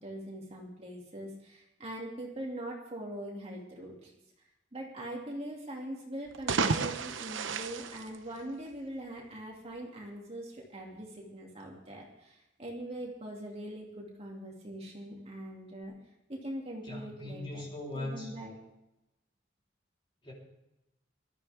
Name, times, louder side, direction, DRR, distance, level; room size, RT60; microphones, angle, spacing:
voice 1, 0.0-4.1 4.7-15.9 16.3-17.6 17.9-18.6, right 1 dB, 35° right, -2 dB, 2.5 m, -42 dB
sound 1, 6.3-8.9, right 4 dB, 80° right, 0.9 m, -32 dB
voice 2, 16.8-18.3 20.2-20.3, left 1 dB, 25° left, -4 dB, 3.8 m, -39 dB
20.0 x 13.5 x 3.5 m, 0.91 s
head